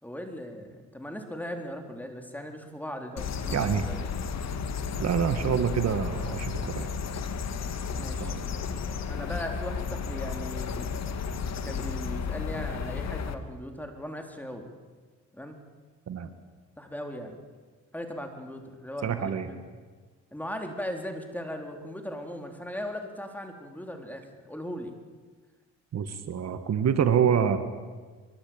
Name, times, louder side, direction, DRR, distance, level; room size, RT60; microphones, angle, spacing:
voice 1, 0.0-4.0 8.0-8.3 9.1-10.9 11.6-14.7 15.3-15.6 16.8-17.4 17.9-19.6 20.3-24.9, equal, 5° left, 4 dB, 3.9 m, -38 dB
sound 1, 3.2-13.3, left 5 dB, 60° left, 2.1 m, -33 dB
voice 2, 3.5-3.8 5.0-6.9 8.2-8.5 16.1-16.3 19.0-19.5 25.9-27.6, right 8 dB, 60° right, 9 dB, 1.9 m, -26 dB
23.5 x 23.5 x 8.9 m, 1.4 s
cardioid pair, 90°, 30 cm